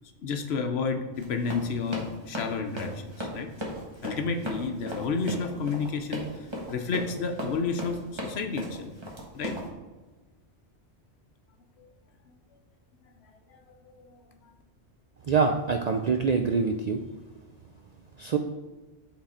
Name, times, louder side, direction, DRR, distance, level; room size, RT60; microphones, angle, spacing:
voice 1, 0.2-3.5 4.0-8.9 9.3-9.6 11.8-11.9 13.5-14.2, left 4 dB, 70° left, 6 dB, 1.0 m, -31 dB
Run, 1.1-9.7, equal, 25° right, 1.2 m, -37 dB
voice 2, 15.3-17.0 18.2-18.4, right 5 dB, 60° right, 4 dB, 0.4 m, -25 dB
8.7 x 3.8 x 4.3 m, 1.2 s
omnidirectional pair, 1.2 m